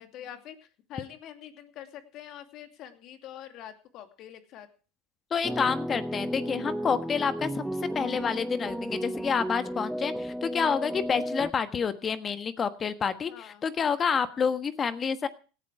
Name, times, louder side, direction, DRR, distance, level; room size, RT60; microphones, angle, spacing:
voice 1, 0.0-4.7 13.3-13.6, left 10 dB, 55° left, 7 dB, 2.6 m, -45 dB
voice 2, 5.3-7.6 7.9-15.3, left 6 dB, 30° left, 11 dB, 1.4 m, -28 dB
sound 1, 5.4-11.5, equal, 5° right, 0.7 m, -33 dB
17.5 x 11.5 x 4.8 m, 0.37 s
hypercardioid pair, 90°, 0 cm